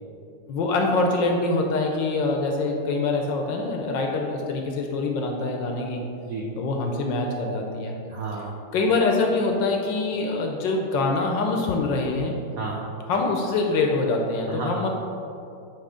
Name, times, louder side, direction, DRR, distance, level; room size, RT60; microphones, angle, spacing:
voice 1, 0.5-6.0 6.6-7.9 8.7-12.3 13.1-14.9, left 3 dB, 70° left, 2 dB, 1.2 m, -24 dB
voice 2, 6.2-6.6 8.1-8.5 12.6-12.9 14.5-14.9, right 3 dB, 80° right, -2 dB, 0.7 m, -32 dB
9.1 x 3.1 x 4.9 m, 2.6 s
omnidirectional pair, 2.4 m